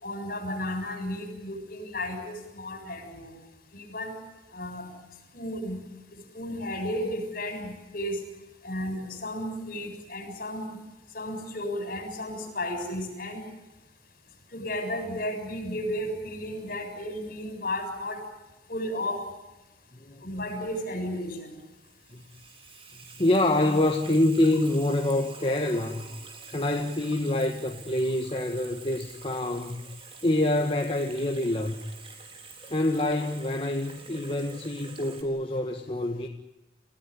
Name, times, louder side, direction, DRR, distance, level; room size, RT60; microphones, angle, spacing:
voice 1, 0.0-3.4 3.7-4.2 4.5-4.9 5.3-5.8 6.1-8.2 8.6-10.8 11.1-13.4 14.5-18.2 18.7-19.3 20.2-21.6, left 1 dB, 50° left, 6 dB, 7.1 m, -33 dB
Water tap faucet / Sink (filling or washing), 21.6-35.2, right 4 dB, 30° right, 3.9 m, -47 dB
voice 2, 23.2-26.1 26.5-29.8 30.2-31.8 32.7-36.3, left 1 dB, 30° left, 3 dB, 1.7 m, -26 dB
29.5 x 16.5 x 10.0 m, 1.0 s
head